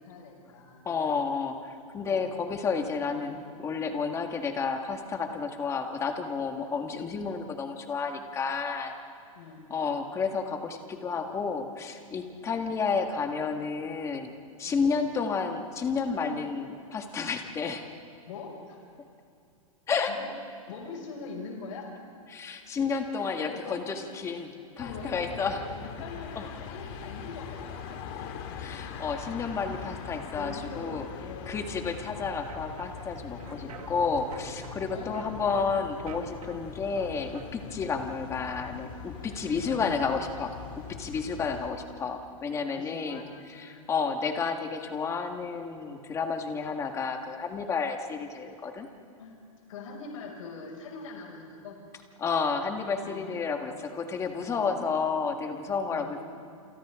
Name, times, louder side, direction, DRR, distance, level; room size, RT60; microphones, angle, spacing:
voice 1, 0.0-0.9 2.1-2.4 3.1-3.4 9.3-9.7 14.7-15.0 18.3-18.8 20.1-20.3 20.7-21.9 22.9-23.0 23.3-23.9 24.8-28.6 30.3-31.7 33.4-33.8 34.9-35.4 36.0-36.3 39.5-40.2 42.7-43.9 49.2-49.4 49.7-51.8 53.0-54.0 54.4-54.7 55.9-56.2, left 4 dB, 65° left, 0 dB, 6.2 m, -43 dB
voice 2, 0.9-8.9 9.7-14.3 14.6-17.8 19.9-20.1 22.3-25.6 26.4-26.5 28.6-31.1 31.5-43.2 43.5-48.9 52.2-56.2, left 5 dB, 15° left, 4 dB, 1.8 m, -31 dB
sound 1, 24.8-41.7, left 7 dB, 40° left, 2.4 m, -42 dB
sound 2, 32.3-37.5, right 7 dB, 90° right, 2.0 m, -48 dB
29.5 x 28.0 x 3.8 m, 2.6 s
hypercardioid pair, 150°, 18 cm